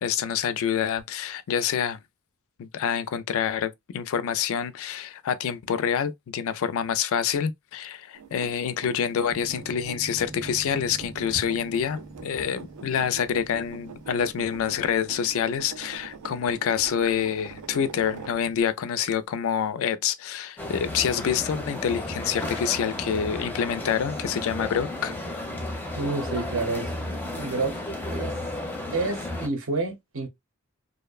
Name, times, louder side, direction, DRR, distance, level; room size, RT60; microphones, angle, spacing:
voice 1, 0.0-2.0 2.6-25.1, left 8 dB, 65° left, 0.3 m, -27 dB
sound 1, 8.1-18.6 19.0-19.1, right 5 dB, 90° right, 0.4 m, -44 dB
sound 2, 9.3-18.6, right 2 dB, 25° right, 0.8 m, -46 dB
sound 3, 20.6-29.5, left 1 dB, 10° left, 0.5 m, -33 dB
voice 2, 26.0-26.9 27.3-27.7 28.1-28.3 28.9-30.3, right 3 dB, 60° right, 0.7 m, -29 dB
2.6 x 2.1 x 2.3 m
head